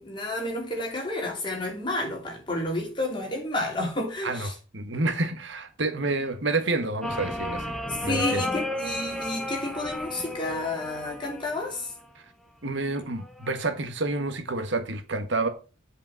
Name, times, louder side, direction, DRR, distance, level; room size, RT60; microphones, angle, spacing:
voice 1, 0.0-4.5 7.9-11.9, left 2 dB, 25° left, 3.0 m, -30 dB
voice 2, 4.2-7.7 8.0-8.4 12.6-15.5, right 2 dB, 60° right, 1.3 m, -29 dB
sound 1, 7.0-12.0 13.2-13.7, left 1 dB, ahead, 0.9 m, -33 dB
8.2 x 5.1 x 7.1 m
head